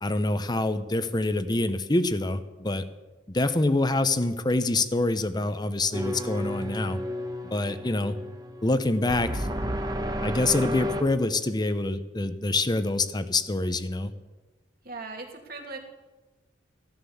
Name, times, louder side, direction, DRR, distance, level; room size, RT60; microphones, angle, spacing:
voice 1, 0.0-2.8 3.3-7.0 7.4-8.2 8.6-9.5 10.2-14.1, left 2 dB, 25° left, 11 dB, 0.9 m, -26 dB
sound 1, 5.9-11.0, equal, 20° right, 1.1 m, -32 dB
voice 2, 14.8-15.8, right 3 dB, 55° right, 2 dB, 2.6 m, -38 dB
15.0 x 11.5 x 7.2 m, 1.2 s
head